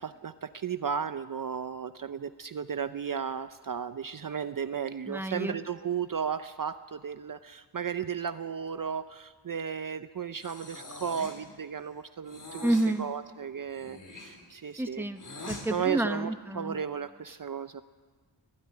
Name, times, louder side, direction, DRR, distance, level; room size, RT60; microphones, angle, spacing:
voice 1, 0.0-15.0 15.7-17.8, right 7 dB, 45° right, 11 dB, 0.6 m, -34 dB
voice 2, 5.1-5.6 12.6-13.1 14.8-16.8, right 1 dB, 5° right, 8 dB, 0.9 m, -30 dB
Breathing, 10.4-11.5 12.2-12.9 13.7-15.7, left 2 dB, 40° left, 4.1 m, -43 dB
23.5 x 15.5 x 9.6 m, 1.5 s
wide cardioid pair, 165°, 46 cm